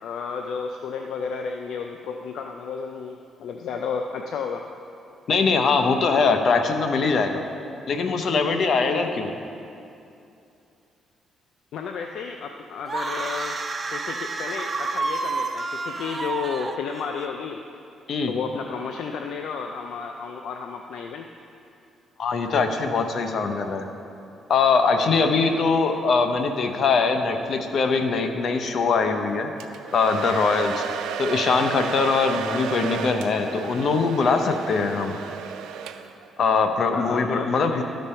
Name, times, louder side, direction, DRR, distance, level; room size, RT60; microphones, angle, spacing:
voice 1, 0.0-4.7 11.7-13.6 13.9-17.6 18.3-21.3 36.9-37.8, left 6 dB, 75° left, 4 dB, 0.4 m, -32 dB
voice 2, 5.3-7.4 7.9-9.3 18.1-18.3 22.2-23.9 24.5-29.5 29.9-30.8 31.2-35.2 36.4-37.8, left 4 dB, 60° left, 6 dB, 0.8 m, -22 dB
sound 1, 12.9-17.3, right 3 dB, 35° right, 0.5 m, -29 dB
Domestic sounds home sounds, 29.6-36.3, right 8 dB, 90° right, 0.4 m, -33 dB
13.0 x 5.3 x 4.3 m, 2.6 s
cardioid pair, 90°, 0 cm